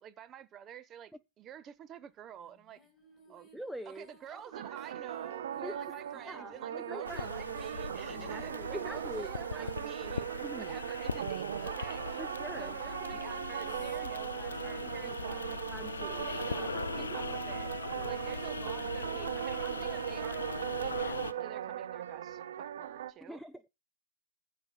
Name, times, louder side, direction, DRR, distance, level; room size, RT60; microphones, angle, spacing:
voice 1, 0.0-2.8 3.3-3.5 3.9-10.3 10.6-12.2 12.6-15.6 16.0-17.7 18.0-20.4 20.8-23.4, right 10 dB, 25° right, 1.1 m, -49 dB
sound 1, 2.4-12.3 13.1-17.8, left 2 dB, 15° left, 6.2 m, -62 dB
voice 2, 3.3-4.4 5.6-5.8 6.3-7.3 8.1-9.7 10.4-10.8 12.2-13.0 15.1-15.2 15.7-16.3 17.0-17.2 18.0-18.1 23.3-23.7, equal, ahead, 0.6 m, -44 dB
sound 2, 4.5-23.1, right 10 dB, 65° right, 1.1 m, -38 dB
sound 3, 7.0-21.3, left 5 dB, 80° left, 0.8 m, -41 dB
14.5 x 5.6 x 5.5 m
hypercardioid pair, 125°, 0 cm